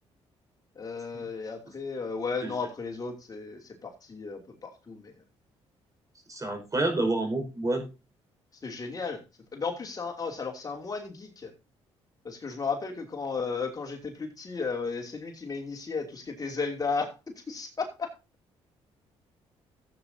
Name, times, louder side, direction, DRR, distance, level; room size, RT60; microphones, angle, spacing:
voice 1, 0.7-5.1 8.6-9.2 9.5-11.5 12.2-17.2 17.5-18.1, left 4 dB, 35° left, 2 dB, 2.8 m, -34 dB
voice 2, 6.3-7.9, right 2 dB, 30° right, 5 dB, 5.1 m, -28 dB
15.5 x 8.5 x 2.8 m, 0.27 s
cardioid pair, 85°, 11 cm